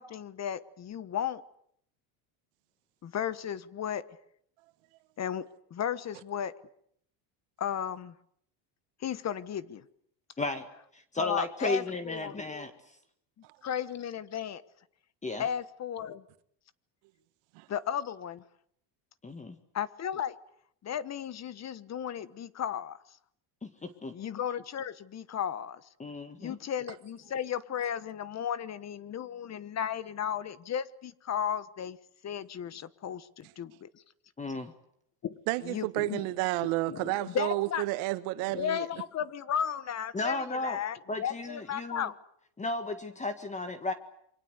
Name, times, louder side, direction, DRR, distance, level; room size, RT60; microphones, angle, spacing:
voice 1, 0.0-1.4 3.0-4.0 5.2-5.4 5.7-6.5 7.6-8.1 9.0-9.8 11.2-12.4 13.6-14.6 15.4-16.2 17.7-18.4 19.7-20.3 20.8-23.0 24.1-25.8 26.4-32.0 32.2-33.9 35.2-36.3 36.9-37.8 38.5-42.1, left 9 dB, 35° left, 1.2 m, -34 dB
voice 2, 10.9-12.7 15.2-15.5 19.2-19.6 23.6-24.1 26.0-26.6 34.4-34.7 40.1-40.8 41.1-42.1 42.6-43.9, left 2 dB, 15° left, 1.8 m, -34 dB
voice 3, 35.5-38.9, right 19 dB, 85° right, 1.7 m, -31 dB
28.5 x 24.5 x 8.1 m
cardioid pair, 140°, 47 cm